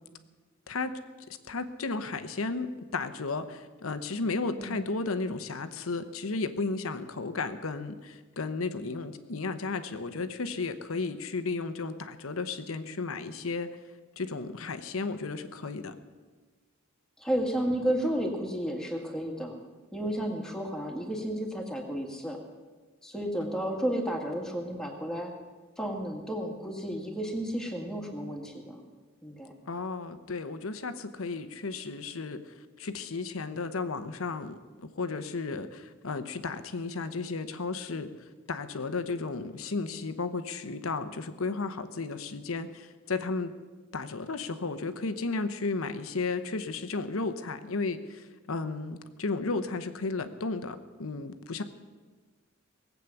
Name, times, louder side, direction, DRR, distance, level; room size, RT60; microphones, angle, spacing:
voice 1, 1.5-2.7 2.9-13.7 14.2-16.0 29.7-38.1 38.5-43.5 43.9-51.6, left 3 dB, 70° left, 10 dB, 0.9 m, -34 dB
voice 2, 17.2-19.5 19.9-22.4 23.0-25.3 25.8-28.8 29.2-29.5, equal, 5° left, 1 dB, 1.9 m, -32 dB
19.0 x 8.3 x 7.1 m, 1.4 s
head